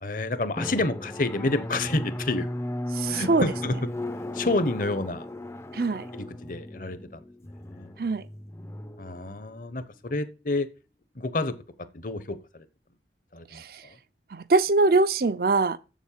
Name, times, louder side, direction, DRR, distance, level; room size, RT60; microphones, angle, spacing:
voice 1, 0.0-2.5 3.1-3.7 4.3-5.2 6.1-7.2 7.7-7.9 9.0-10.7 11.2-11.5 11.9-12.6 13.3-13.6, left 2 dB, 50° left, 1.0 m, -29 dB
Drum, 0.6-9.8, left 1 dB, 15° left, 0.5 m, -36 dB
voice 2, 2.9-3.5 5.7-6.1 8.0-8.3 13.5-13.9 14.3-15.8, right 3 dB, 55° right, 0.6 m, -23 dB
7.5 x 7.2 x 7.3 m
head